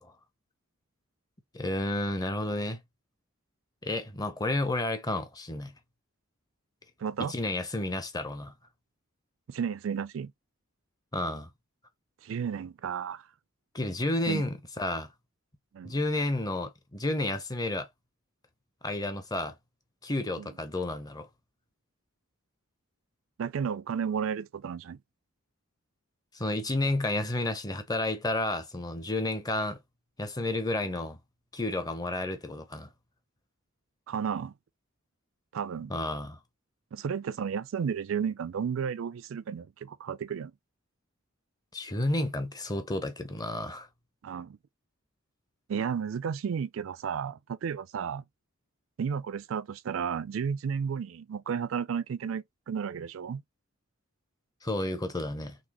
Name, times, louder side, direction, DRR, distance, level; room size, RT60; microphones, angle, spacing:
voice 1, 1.5-2.8 3.8-5.7 7.2-8.5 11.1-11.5 13.7-15.1 15.8-17.9 18.8-19.5 20.0-21.3 26.3-29.8 30.2-31.2 31.5-32.9 35.9-36.4 41.7-43.9 54.6-55.6, left 1 dB, 20° left, 0.7 m, -31 dB
voice 2, 7.0-7.3 9.5-10.3 12.2-13.3 14.3-14.4 15.7-16.0 20.4-20.5 23.4-25.0 34.1-34.5 35.5-35.9 36.9-40.5 44.2-44.6 45.7-48.2 49.0-53.4, right 7 dB, 70° right, 0.4 m, -33 dB
4.1 x 3.2 x 2.9 m
head